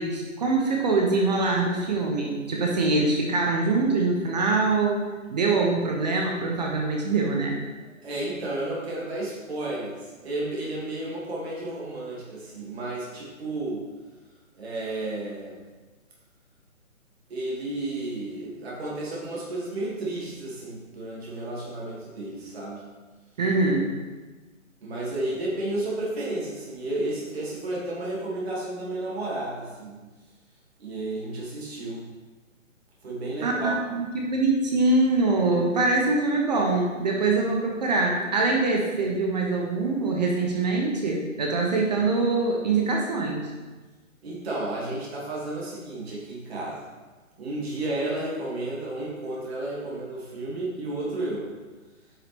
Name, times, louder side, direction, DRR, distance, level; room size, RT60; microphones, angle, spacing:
voice 1, 0.0-7.6 23.4-23.9 33.4-43.5, right 3 dB, 30° right, 0 dB, 0.9 m, -24 dB
voice 2, 8.0-13.9 14.5-15.6 17.3-22.8 24.8-30.0 30.8-32.0 33.0-33.8 44.2-46.8 47.4-51.5, right 2 dB, 50° right, -5 dB, 2.6 m, -32 dB
9.8 x 5.7 x 3.5 m, 1.3 s
figure-of-eight pair, 140°, 41 cm